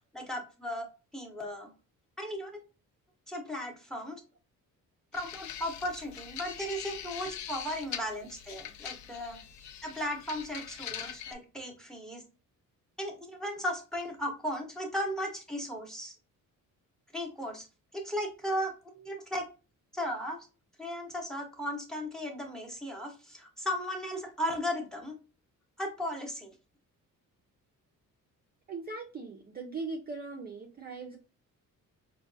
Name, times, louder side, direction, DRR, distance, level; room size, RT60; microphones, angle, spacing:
voice 1, 0.1-0.8 1.1-1.7 2.2-2.5 3.3-4.2 5.1-9.4 9.8-12.2 13.0-16.1 17.1-17.6 17.9-18.7 19.0-19.4 19.9-20.4 20.8-25.2 25.8-26.5, equal, ahead, 3 dB, 0.8 m, -36 dB
sound 1, 5.1-11.3, left 9 dB, 60° left, 0.5 m, -42 dB
voice 2, 28.7-31.2, right 3 dB, 30° right, 1 dB, 0.5 m, -40 dB
5.0 x 2.2 x 2.5 m, 0.32 s
cardioid pair, 155°, 33 cm